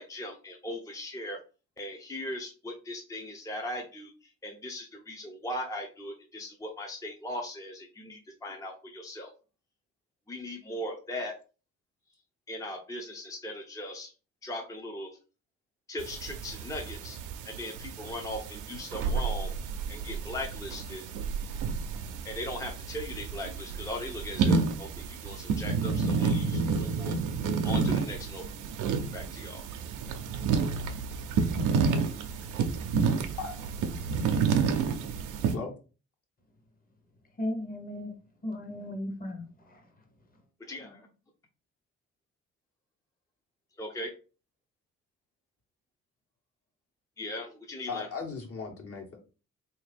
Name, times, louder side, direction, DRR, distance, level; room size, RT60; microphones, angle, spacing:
voice 1, 0.0-1.4 1.8-4.1 4.4-9.3 10.3-11.3 12.5-14.1 14.4-15.2 15.9-17.2 17.4-19.5 19.9-21.0 22.2-27.2 27.6-28.4 29.1-29.6 40.7-41.1 43.8-44.1 47.2-48.1, left 1 dB, 10° left, 0.6 m, -39 dB
sound 1, 16.0-35.6, right 5 dB, 90° right, 0.6 m, -30 dB
voice 2, 37.4-38.2 38.4-39.9, left 1 dB, 30° left, 1.1 m, -36 dB
voice 3, 47.9-49.2, left 5 dB, 50° left, 1.4 m, -37 dB
3.5 x 2.7 x 3.4 m
cardioid pair, 90°, 30 cm